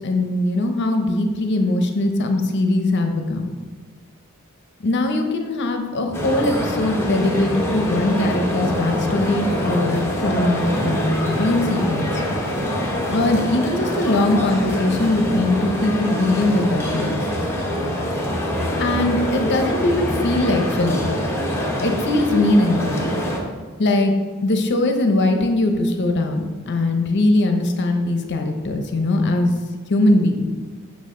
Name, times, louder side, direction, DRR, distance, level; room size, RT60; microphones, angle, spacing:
voice 1, 0.0-3.5 4.8-12.2 13.1-17.2 18.8-21.1 21.8-23.1 23.8-24.1 24.4-29.5 29.9-30.5, left 2 dB, 55° left, 5 dB, 0.7 m, -21 dB
sound 1, 6.1-23.4, equal, 10° left, 1.0 m, -24 dB
6.4 x 5.9 x 3.7 m, 1.4 s
head